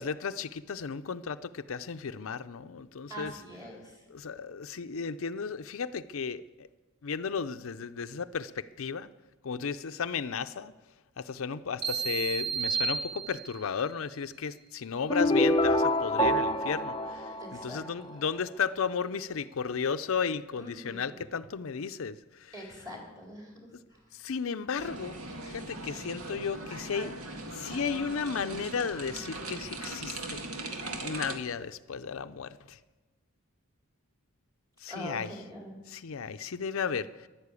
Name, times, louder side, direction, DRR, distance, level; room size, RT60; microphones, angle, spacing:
voice 1, 0.0-3.3 4.1-6.7 7.0-9.1 9.4-10.7 11.2-22.7 24.1-25.2 25.5-27.1 27.5-30.4 31.0-32.8 34.8-35.3 35.9-37.3, left 6 dB, 65° left, 10 dB, 0.5 m, -34 dB
voice 2, 3.1-4.0 17.4-17.8 18.2-18.3 20.6-21.2 22.5-23.5 23.9-24.0 34.9-35.8, equal, 15° right, -1 dB, 4.1 m, -43 dB
sound 1, 11.8-13.8, right 5 dB, 55° right, 2.7 m, -32 dB
sound 2, 15.1-18.2, left 1 dB, 20° left, 0.6 m, -26 dB
sound 3, 24.8-31.4, right 2 dB, 85° right, 2.0 m, -40 dB
14.5 x 11.5 x 8.3 m, 1.2 s
head